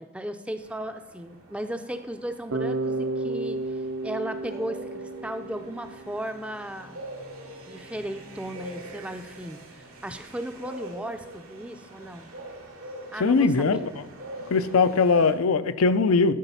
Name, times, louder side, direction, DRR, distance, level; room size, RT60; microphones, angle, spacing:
voice 1, 0.0-3.6 4.0-7.0 7.7-12.3 13.1-13.8, right 1 dB, 5° right, 8 dB, 0.4 m, -36 dB
sound 1, 0.6-15.3, right 1 dB, 90° right, 2.3 m, -44 dB
Bass guitar, 2.5-6.5, right 2 dB, 60° right, 0.6 m, -32 dB
voice 2, 13.2-14.0 14.5-16.3, left 4 dB, 80° left, 12 dB, 0.5 m, -21 dB
12.0 x 5.1 x 5.6 m, 1.1 s
head